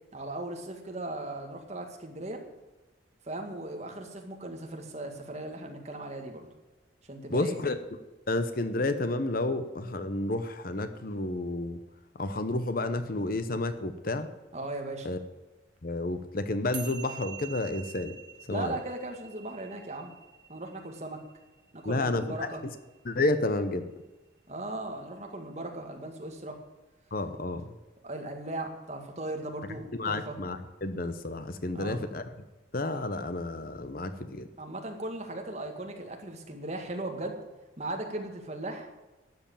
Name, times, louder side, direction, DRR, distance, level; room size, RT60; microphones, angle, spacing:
voice 1, 0.1-2.4 3.2-6.5 7.1-7.6 14.5-15.1 18.5-20.1 20.5-21.2 21.7-22.6 24.5-26.6 28.0-30.4 31.7-32.0 34.6-37.4 37.8-38.9, right 2 dB, 35° right, 3 dB, 2.0 m, -37 dB
voice 2, 7.3-7.8 8.3-11.8 12.2-14.3 15.0-15.2 15.8-18.2 18.5-18.8 21.8-22.5 23.0-23.9 27.1-27.7 29.9-32.2 32.7-34.5, left 2 dB, 45° left, 10 dB, 0.8 m, -30 dB
sound 1, 16.7-23.3, right 9 dB, 60° right, 1.8 m, -47 dB
12.5 x 8.0 x 8.8 m, 1.1 s
head